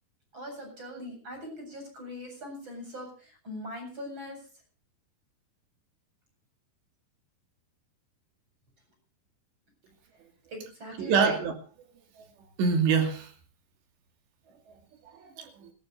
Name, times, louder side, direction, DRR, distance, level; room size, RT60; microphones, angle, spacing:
voice 1, 0.3-4.4 10.5-11.4, equal, 25° right, 3 dB, 8.4 m, -40 dB
voice 2, 11.0-11.5 12.2-12.3 12.6-13.3 15.1-15.7, right 5 dB, 80° right, 5 dB, 4.7 m, -26 dB
27.5 x 14.0 x 2.7 m, 0.38 s
omnidirectional pair, 5.0 m